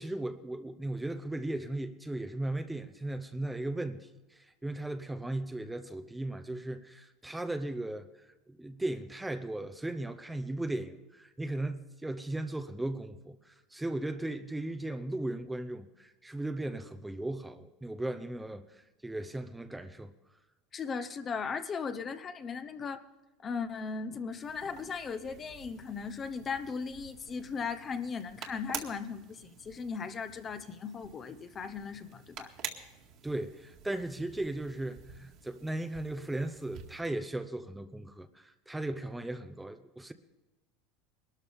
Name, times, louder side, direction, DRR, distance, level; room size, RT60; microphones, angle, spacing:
voice 1, 0.0-20.1 33.2-40.1, right 1 dB, 5° right, 0.7 m, -37 dB
voice 2, 20.7-23.0 23.4-32.5, left 5 dB, 25° left, 0.9 m, -37 dB
sound 1, 24.3-37.0, right 8 dB, 50° right, 2.0 m, -48 dB
21.0 x 13.0 x 3.6 m
supercardioid pair, 130°, 0 cm